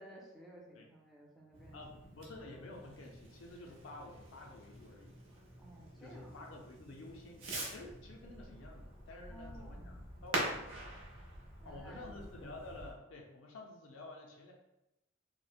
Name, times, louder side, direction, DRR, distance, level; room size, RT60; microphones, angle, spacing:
voice 1, 0.0-1.8 5.6-6.5 9.3-9.9 11.6-12.5, equal, ahead, -3 dB, 0.4 m, -55 dB
Fireworks, 1.5-12.9, right 1 dB, 90° right, 0.7 m, -45 dB
voice 2, 1.7-5.2 6.0-11.0 11.6-14.5, left 2 dB, 75° left, 1 dB, 0.5 m, -51 dB
3.0 x 2.0 x 2.2 m, 0.90 s
head